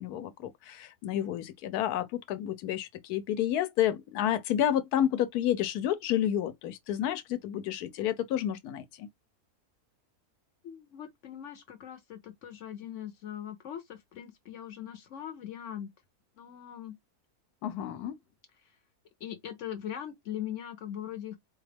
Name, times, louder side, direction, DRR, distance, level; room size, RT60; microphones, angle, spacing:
voice 1, 0.0-9.1 17.6-18.2, left 11 dB, 85° left, 1.1 m, -30 dB
voice 2, 10.6-15.9 16.4-17.0 18.0-18.1 19.2-21.4, left 10 dB, 60° left, 0.9 m, -41 dB
4.1 x 2.3 x 3.3 m
omnidirectional pair, 1.6 m